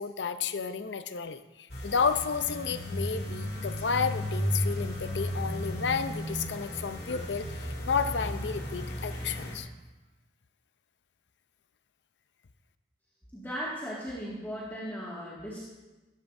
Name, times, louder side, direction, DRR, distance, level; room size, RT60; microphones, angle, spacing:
voice 1, 0.0-9.7, left 5 dB, 85° left, 10 dB, 0.7 m, -31 dB
sound 1, 1.7-9.6, equal, 65° left, 2.2 m, -34 dB
voice 2, 13.3-15.6, equal, 10° left, -8 dB, 2.1 m, -37 dB
15.0 x 14.5 x 2.7 m, 1.1 s
head